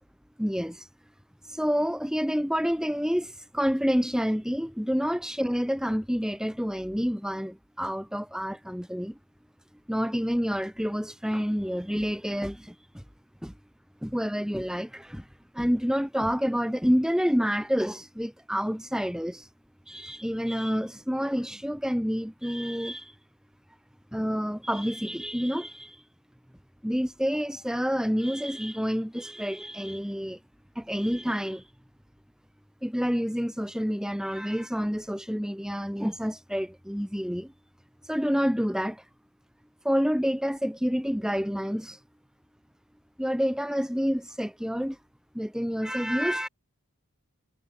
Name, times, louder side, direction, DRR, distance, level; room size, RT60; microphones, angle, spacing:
voice 1, 0.4-0.8 1.5-9.1 9.9-13.0 13.4-13.5 14.0-15.2 15.6-19.5 19.9-23.1 24.1-26.0 26.8-30.4 30.8-31.6 32.8-37.5 38.1-39.0 39.8-42.0 43.2-45.0 45.4-46.5, equal, 5° right, 7.0 m, -28 dB
head